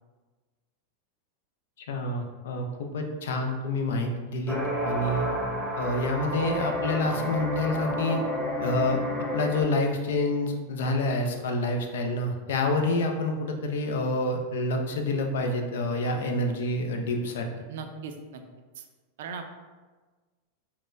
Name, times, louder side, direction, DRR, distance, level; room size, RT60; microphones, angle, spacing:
voice 1, 1.8-4.6 4.8-5.3 5.8-8.2 8.6-9.0 9.3-17.5, left 2 dB, 75° left, 3 dB, 0.5 m, -28 dB
sound 1, 4.5-9.6, equal, 10° right, 0.7 m, -30 dB
voice 2, 17.7-18.4 19.2-19.5, right 5 dB, 75° right, 6 dB, 0.4 m, -38 dB
4.0 x 2.1 x 2.5 m, 1.3 s
hypercardioid pair, 120°, 0 cm